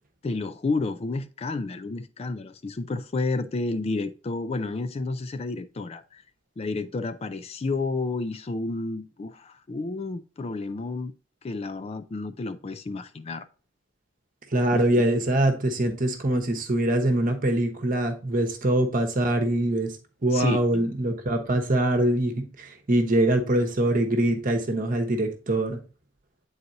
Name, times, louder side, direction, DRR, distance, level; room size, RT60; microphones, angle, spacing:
voice 1, 0.2-6.2 6.6-11.1 11.4-13.5 14.7-15.0 20.3-20.9, left 3 dB, 30° left, 0.4 m, -31 dB
voice 2, 14.5-19.9 20.2-25.8, right 1 dB, 45° right, 1.0 m, -23 dB
9.2 x 4.0 x 2.7 m
head